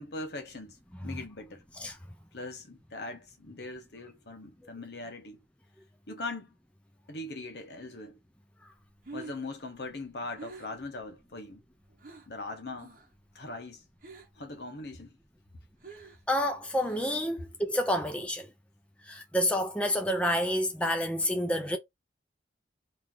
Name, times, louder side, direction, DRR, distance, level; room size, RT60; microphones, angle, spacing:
voice 1, 0.0-1.7 2.3-5.4 6.1-6.5 7.1-8.2 9.1-11.6 12.3-12.9 13.3-13.8 14.3-15.1, left 2 dB, 65° left, 1.0 m, -41 dB
Breathing, 8.8-12.4 12.7-13.2 13.5-14.5 14.8-17.4, right 3 dB, 45° right, 0.9 m, -48 dB
voice 2, 16.3-18.5 19.0-21.8, equal, 5° left, 0.6 m, -29 dB
3.0 x 2.8 x 3.7 m
head